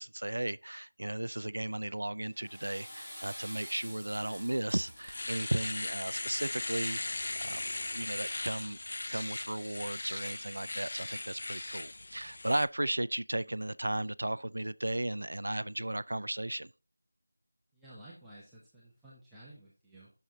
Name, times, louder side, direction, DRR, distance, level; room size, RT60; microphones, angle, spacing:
voice 1, 0.0-8.8 9.1-16.7, right 1 dB, 75° right, 0.4 m, -35 dB
Water / Toilet flush, 2.2-7.5, equal, 20° left, 2.9 m, -49 dB
Domestic sounds home sounds, 4.4-4.5 4.9-12.6, left 2 dB, 35° left, 0.4 m, -38 dB
voice 2, 17.7-20.1, right 1 dB, ahead, 0.6 m, -53 dB
9.1 x 6.4 x 2.7 m
figure-of-eight pair, 180°, 0 cm